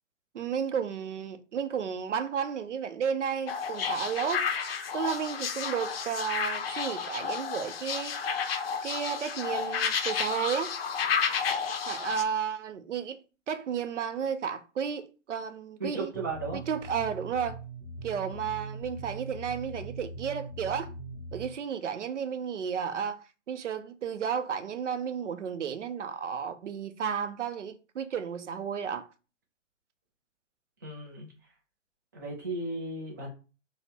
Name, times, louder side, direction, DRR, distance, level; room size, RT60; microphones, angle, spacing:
voice 1, 0.3-4.4 4.9-8.2 8.8-10.7 11.9-16.3 16.5-17.6 18.0-20.9 21.3-29.1, right 7 dB, 70° right, 0.6 m, -33 dB
sound 1, 3.5-12.2, left 6 dB, 50° left, 0.5 m, -31 dB
voice 2, 15.8-16.6 30.8-31.3 32.1-33.3, right 2 dB, 15° right, 0.4 m, -35 dB
sound 2, 16.1-21.5, right 2 dB, 35° right, 1.1 m, -41 dB
3.8 x 2.1 x 2.8 m
figure-of-eight pair, 135°, 38 cm